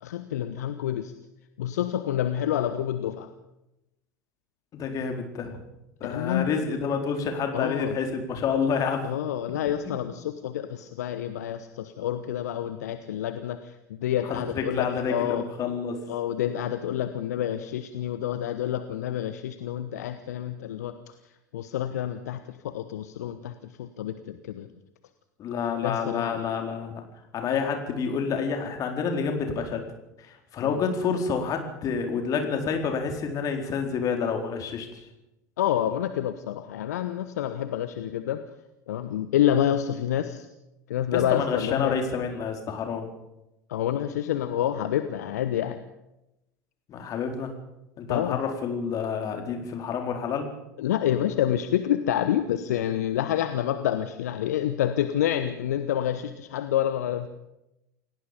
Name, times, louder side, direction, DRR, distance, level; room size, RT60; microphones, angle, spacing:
voice 1, 0.0-1.1 1.6-3.3 6.1-6.5 7.5-8.0 9.0-15.4 16.1-20.9 21.5-24.7 25.8-26.4 30.6-30.8 35.6-38.4 38.9-40.5 40.9-42.0 43.7-45.8 48.1-48.4 50.8-57.3, left 11 dB, 65° left, 10 dB, 1.2 m, -28 dB
voice 2, 4.7-5.6 6.0-9.1 14.2-16.0 25.4-27.0 27.3-29.8 30.2-35.0 41.1-43.1 46.9-47.5 48.0-50.5, left 6 dB, 40° left, 4 dB, 4.3 m, -28 dB
28.0 x 17.5 x 5.3 m, 0.91 s
figure-of-eight pair, 75°, 9 cm